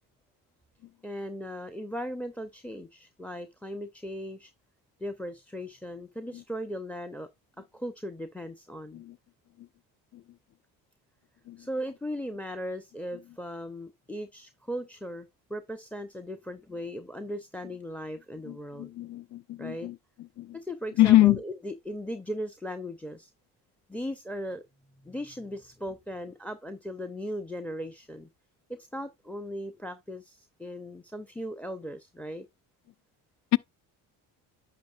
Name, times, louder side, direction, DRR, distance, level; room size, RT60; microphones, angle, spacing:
voice 1, 1.0-4.5 5.0-7.3 7.7-9.0 11.6-18.9 19.6-19.9 20.5-23.3 23.9-24.6 25.0-28.3 28.7-32.5, equal, 5° left, 0.6 m, -38 dB
voice 2, 18.5-19.9 20.4-20.5 21.0-21.4 33.5-33.6, left 15 dB, 40° left, 0.4 m, -23 dB
10.5 x 6.7 x 2.4 m
supercardioid pair, 65°, 47 cm